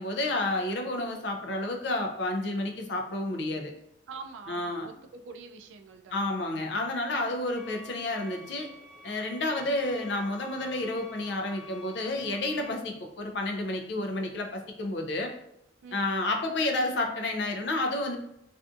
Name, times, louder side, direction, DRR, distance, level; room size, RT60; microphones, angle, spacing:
voice 1, 0.0-3.7 4.5-4.9 6.1-8.7 9.0-15.3 15.9-18.2, left 2 dB, 65° left, 3 dB, 0.4 m, -30 dB
voice 2, 4.1-6.2 15.8-16.0, right 4 dB, 80° right, 6 dB, 0.3 m, -45 dB
sound 1, 7.6-12.7, left 3 dB, 5° left, 0.4 m, -49 dB
2.5 x 2.3 x 2.4 m, 0.80 s
head